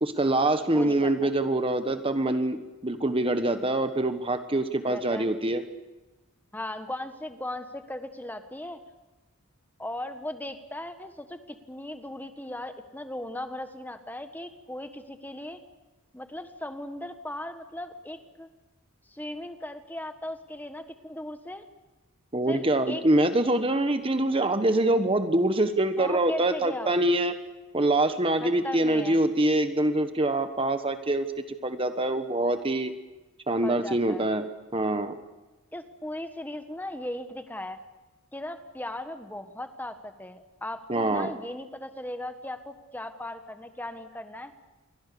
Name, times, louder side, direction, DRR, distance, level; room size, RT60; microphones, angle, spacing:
voice 1, 0.0-5.6 22.3-27.3 27.7-32.9 33.5-34.5 34.7-35.2 40.9-41.3, right 1 dB, 25° right, 9 dB, 1.2 m, -25 dB
voice 2, 0.7-1.3 4.9-5.3 6.5-8.8 9.8-15.6 16.1-18.5 19.1-21.6 22.5-23.0 26.0-26.9 28.4-29.2 33.6-34.3 35.7-37.8 38.3-44.5, left 1 dB, 10° left, 8 dB, 1.4 m, -37 dB
28.0 x 23.0 x 6.9 m, 1.1 s
head